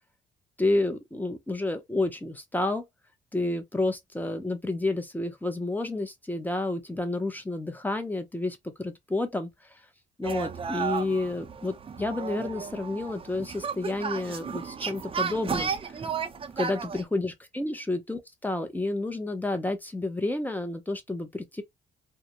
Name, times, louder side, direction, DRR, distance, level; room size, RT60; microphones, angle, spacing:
voice 1, 0.6-2.8 3.3-9.8 10.2-16.0 16.6-21.6, left 2 dB, 10° left, 0.7 m, -30 dB
sound 1, 10.2-17.0, right 6 dB, 30° right, 0.5 m, -33 dB
2.3 x 2.0 x 2.8 m
cardioid pair, 90°, 20 cm